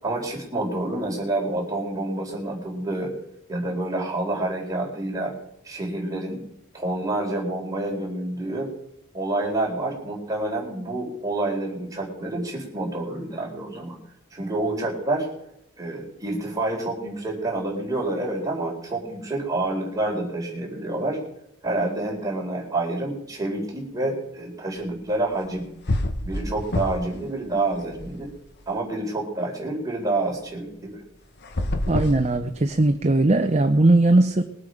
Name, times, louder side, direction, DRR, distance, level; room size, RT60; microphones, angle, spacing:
voice 1, 0.0-3.1 3.5-5.3 5.6-6.5 6.7-8.7 9.1-14.0 14.3-15.3 15.8-21.2 21.6-25.7 26.2-28.3 28.7-31.0, right 2 dB, 15° right, -3 dB, 4.2 m, -28 dB
sound 1, 25.4-25.6 25.9-27.2 27.5-28.6 31.4-32.9, left 1 dB, 50° left, 1.2 m, -28 dB
voice 2, 31.9-34.4, right 2 dB, 30° right, 7 dB, 0.7 m, -19 dB
21.5 x 8.2 x 5.0 m, 0.82 s
head